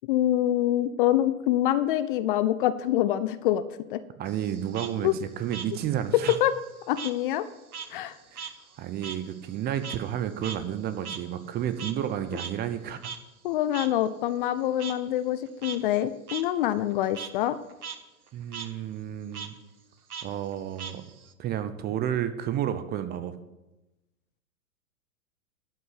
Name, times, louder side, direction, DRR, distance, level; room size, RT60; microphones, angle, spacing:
voice 1, 0.1-3.6 3.9-4.0 5.0-5.1 6.4-6.6 6.9-7.5 7.9-8.2 13.4-17.6, left 12 dB, 40° left, 14 dB, 0.5 m, -25 dB
voice 2, 4.2-6.4 8.3-8.5 8.8-13.0 18.3-19.6 20.2-21.0 21.4-23.3, right 10 dB, 20° right, 12 dB, 0.8 m, -31 dB
Frog, 4.3-7.2 7.5-12.1 12.4-12.5 13.0-13.2 13.7-13.9 14.8-14.9 15.5-15.8 16.3-16.4 16.8-17.3 17.7-18.0 18.3-18.7 19.3-19.5 20.1-21.3, right 6 dB, 85° right, 1.3 m, -39 dB
12.0 x 5.9 x 8.3 m, 1.0 s
hypercardioid pair, 110°, 43 cm